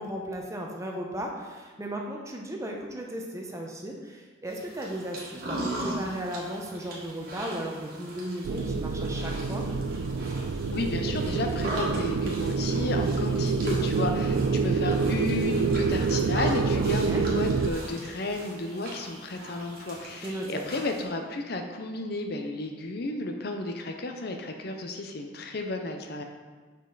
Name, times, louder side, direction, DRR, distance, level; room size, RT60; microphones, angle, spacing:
voice 1, 0.0-9.6 16.7-17.2 20.2-20.6, right 1 dB, 15° right, 0 dB, 0.7 m, -36 dB
sound 1, 4.5-21.0, right 1 dB, 50° right, 1.5 m, -40 dB
sound 2, 8.4-17.7, right 4 dB, 65° right, 0.3 m, -27 dB
voice 2, 10.7-26.2, left 2 dB, 50° left, 4 dB, 0.6 m, -33 dB
6.4 x 5.2 x 3.9 m, 1.4 s
head